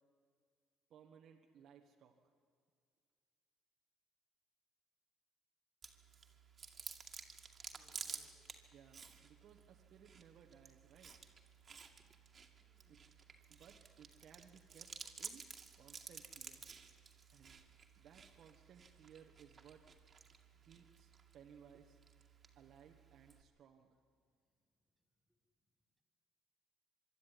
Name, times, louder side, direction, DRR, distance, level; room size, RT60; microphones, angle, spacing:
voice 1, 0.9-2.2 8.7-11.1 12.9-13.0 13.5-16.7 17.3-17.6 18.0-19.9 20.6-22.0 22.6-24.0, right 8 dB, 60° right, 1 dB, 1.5 m, -62 dB
Chewing mastication, 5.8-23.4, right 6 dB, 40° right, 2.3 m, -54 dB
voice 2, 7.7-8.4 12.6-13.0, left 1 dB, 5° right, 5 dB, 4.7 m, -73 dB
24.5 x 12.5 x 9.9 m, 2.1 s
supercardioid pair, 70°, 0 cm